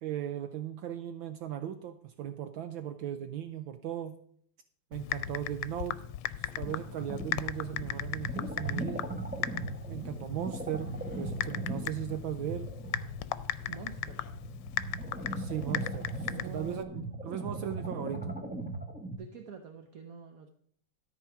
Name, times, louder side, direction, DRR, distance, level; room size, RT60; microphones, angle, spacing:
voice 1, 0.0-4.2 4.9-6.0 6.4-9.2 9.9-12.7 15.3-18.4, right 11 dB, 75° right, 9 dB, 1.3 m, -38 dB
Typing, 4.9-16.8, left 13 dB, 80° left, 1.4 m, -38 dB
sound 1, 5.8-8.1 8.3-12.8 13.2-13.7, left 1 dB, 5° left, 3.1 m, -56 dB
sound 2, 6.6-19.2, right 2 dB, 15° right, 0.4 m, -39 dB
voice 2, 13.6-14.3 16.3-17.0 19.1-20.5, right 6 dB, 60° right, 5 dB, 1.0 m, -46 dB
13.5 x 4.5 x 5.9 m, 0.64 s
omnidirectional pair, 2.4 m